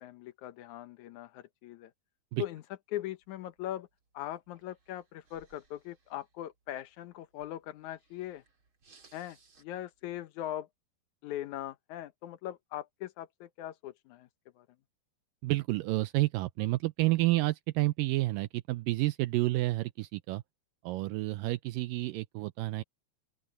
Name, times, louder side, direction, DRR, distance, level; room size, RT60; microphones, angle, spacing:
voice 1, 0.0-1.9 2.4-2.6 2.9-3.9 4.1-8.4 9.1-10.7 11.2-14.3 14.6-14.7, left 13 dB, 70° left, 1.9 m, -40 dB
sound 1, 3.2-10.2, right 4 dB, 35° right, 3.8 m, -66 dB
voice 2, 15.4-20.4 20.8-22.8, right 19 dB, 80° right, 2.0 m, -30 dB
open air
omnidirectional pair, 4.4 m